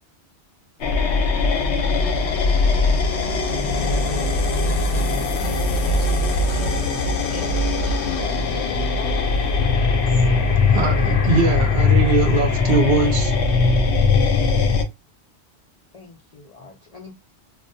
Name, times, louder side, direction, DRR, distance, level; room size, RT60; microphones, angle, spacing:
sound 1, 0.8-14.8, left 3 dB, 75° left, 0.9 m, -20 dB
voice 1, 3.5-7.5 7.8-7.9, right 2 dB, 30° right, 0.7 m, -36 dB
voice 2, 7.4-9.3 15.9-17.1, left 4 dB, 55° left, 0.4 m, -41 dB
voice 3, 10.7-13.6, right 4 dB, 65° right, 0.8 m, -22 dB
2.3 x 2.2 x 2.6 m
omnidirectional pair, 1.2 m